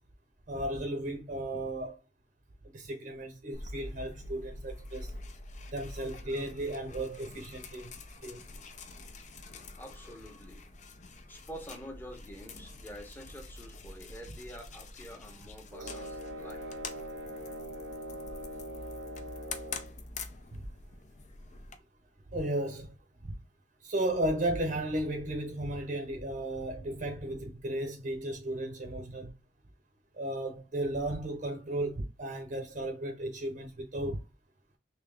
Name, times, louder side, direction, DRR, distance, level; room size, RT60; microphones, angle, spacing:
voice 1, 0.5-2.0 2.7-5.1 5.7-7.9 8.2-8.4 15.8-15.9 20.6-20.7 22.3-22.9 23.2-23.4 23.8-29.3 30.1-34.2, right 1 dB, 45° right, 0.7 m, -34 dB
sound 1, 3.5-21.8, left 3 dB, 45° left, 0.6 m, -46 dB
voice 2, 9.8-10.6 11.3-16.7, equal, 10° left, 0.9 m, -47 dB
sound 2, 15.7-20.0, equal, 80° right, 0.7 m, -42 dB
3.4 x 2.9 x 3.3 m
head